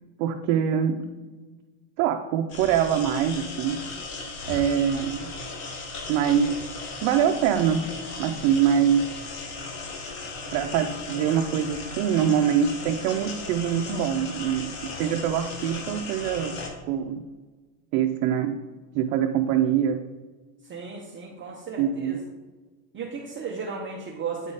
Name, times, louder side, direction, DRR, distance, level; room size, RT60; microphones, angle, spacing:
voice 1, 0.2-1.1 2.0-3.8 4.5-5.3 6.1-6.6 7.0-7.9 8.2-9.1 10.5-16.6 16.9-17.2 17.9-18.6 18.9-20.0 21.8-22.2, right 8 dB, 70° right, 5 dB, 0.6 m, -24 dB
sound 1, 2.5-16.7, left 3 dB, 70° left, 1.5 m, -37 dB
voice 2, 20.7-22.2 22.9-24.5, right 5 dB, 25° right, -2 dB, 0.7 m, -35 dB
9.1 x 3.7 x 3.9 m, 1.3 s
cardioid pair, 140°, 48 cm